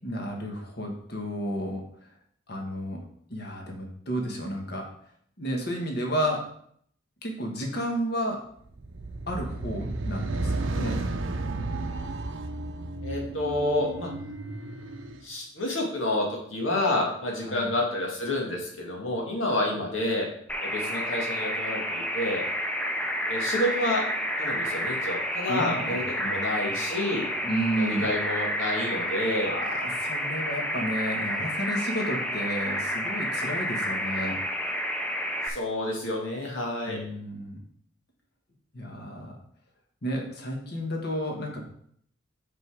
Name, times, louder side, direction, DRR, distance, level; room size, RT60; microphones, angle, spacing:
voice 1, 0.0-1.8 2.5-3.0 3.3-4.9 5.4-6.5 7.2-8.4 9.3-11.0 17.5-17.7 25.5-26.7 27.4-28.1 29.4-34.4 36.9-37.6 38.7-39.4 40.0-41.6, equal, 55° left, 1 dB, 1.4 m, -32 dB
sound 1, 8.7-15.2, right 2 dB, 85° right, 0.7 m, -33 dB
voice 2, 13.0-14.1 15.2-20.3 20.6-22.4 23.3-24.0 24.4-27.3 27.8-29.6 35.5-37.0, left 1 dB, 80° left, -1 dB, 1.9 m, -29 dB
sound 2, 20.5-35.5, equal, 5° left, 0.6 m, -30 dB
5.4 x 5.3 x 4.8 m, 0.64 s
head